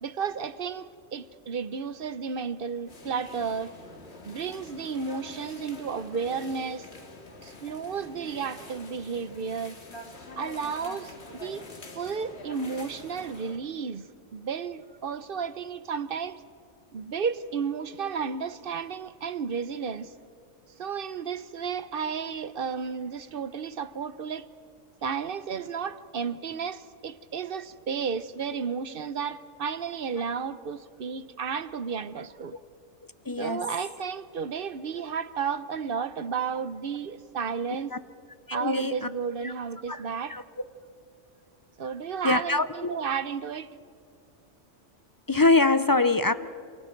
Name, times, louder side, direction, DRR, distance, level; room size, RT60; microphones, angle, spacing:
voice 1, 0.0-3.7 4.2-6.9 7.4-9.8 10.4-16.4 16.9-20.1 20.8-24.5 25.0-32.6 33.4-37.9 38.5-40.4 41.8-43.7, right 6 dB, 50° right, 0.9 m, -33 dB
sound 1, 2.9-13.6, left 3 dB, 60° left, 2.3 m, -45 dB
voice 2, 33.3-33.7 37.7-38.0 38.5-39.1 39.4-39.5 39.9-40.0 40.3-40.4 42.2-43.0 45.3-46.3, left 3 dB, 30° left, 0.4 m, -24 dB
29.0 x 29.0 x 4.6 m
omnidirectional pair, 1.3 m